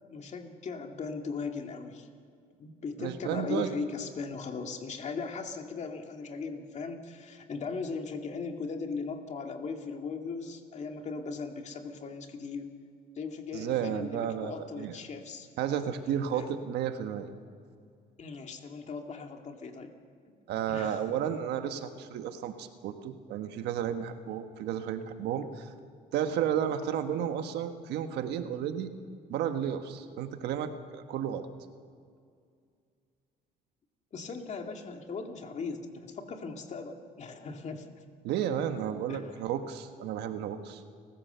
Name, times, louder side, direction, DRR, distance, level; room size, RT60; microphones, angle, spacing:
voice 1, 0.1-2.1 2.6-12.7 13.2-15.5 16.3-16.5 18.2-19.9 20.7-21.0 34.1-37.9 39.1-39.4, left 4 dB, 45° left, 4 dB, 2.3 m, -38 dB
voice 2, 3.0-3.7 13.5-15.0 15.6-17.3 20.5-25.7 26.1-28.9 29.3-31.5 38.2-40.8, right 9 dB, 80° right, 8 dB, 1.4 m, -32 dB
30.0 x 15.0 x 6.8 m, 2.2 s
cardioid pair, 110°, 17 cm